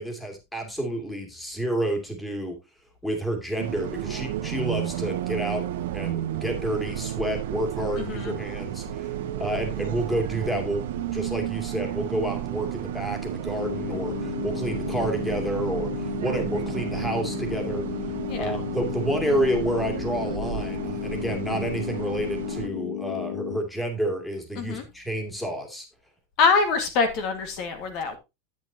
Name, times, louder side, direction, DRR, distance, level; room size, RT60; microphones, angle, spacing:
voice 1, 0.0-2.6 3.0-9.1 9.4-17.8 18.4-25.9, right 1 dB, 5° left, 4 dB, 2.4 m, -29 dB
Bus, 3.6-22.7, right 12 dB, 80° right, 1.4 m, -32 dB
voice 2, 8.0-8.3 18.3-18.5 24.6-24.8 26.4-28.2, left 5 dB, 50° left, 7 dB, 1.8 m, -24 dB
sound 1, 13.6-23.6, left 15 dB, 80° left, 0.9 m, -33 dB
11.0 x 8.3 x 2.8 m, 0.24 s
supercardioid pair, 140°, 0 cm